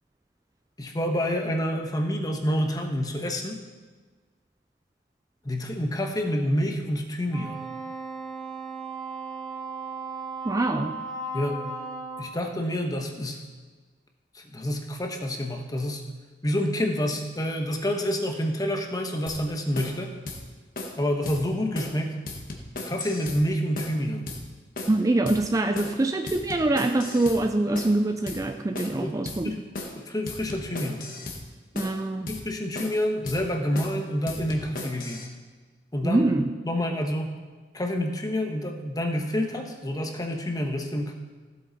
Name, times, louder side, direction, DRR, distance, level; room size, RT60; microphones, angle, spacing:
voice 1, 0.8-3.6 5.4-7.6 11.3-11.6 12.2-13.5 14.3-16.0 16.4-20.2 21.0-22.2 22.9-24.3 29.0-29.1 29.4-29.6 30.0-31.0 32.3-35.3 35.9-37.3 37.7-41.1, equal, 20° left, 3 dB, 1.1 m, -28 dB
Wind instrument woodwind instrument, 7.3-12.4, right 3 dB, 5° left, 2.9 m, -36 dB
voice 2, 10.4-11.0 24.9-29.5 31.7-32.3 36.0-36.5, right 2 dB, 20° right, 7 dB, 0.4 m, -24 dB
sound 1, 19.3-19.4 19.8-20.0 20.3-20.4 20.8-21.0 21.3-21.4 21.8-22.0 22.3-23.4 23.8-24.0 24.3-24.4 24.8-25.0 25.3-25.4 25.8-26.0 26.3-27.4 27.8-28.0 28.3-28.4 28.8-29.0 29.3-29.4 29.8-30.0 30.3-31.4 31.8-32.0 32.3-32.4 32.8-33.0 33.3-33.4 33.8-34.0 34.3-35.3, left 2 dB, 55° left, 1.5 m, -36 dB
15.5 x 7.7 x 4.1 m, 1.4 s
head